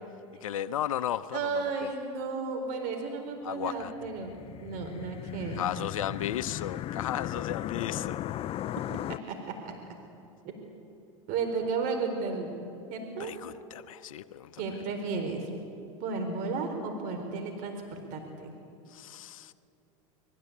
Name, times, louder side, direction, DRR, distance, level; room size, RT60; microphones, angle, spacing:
voice 1, 0.4-1.9 3.4-3.9 5.6-8.2 13.2-14.6 18.9-19.5, left 11 dB, 80° left, 13 dB, 0.8 m, -35 dB
voice 2, 1.3-5.6 9.1-9.7 10.4-10.6 11.3-12.5 12.9-13.3 14.6-15.5 16.0-18.5, right 4 dB, 50° right, 4 dB, 4.1 m, -34 dB
sound 1, 4.0-9.2, left 12 dB, 35° left, 0.5 m, -37 dB
25.0 x 21.0 x 8.6 m, 2.7 s
hypercardioid pair, 100°, 17 cm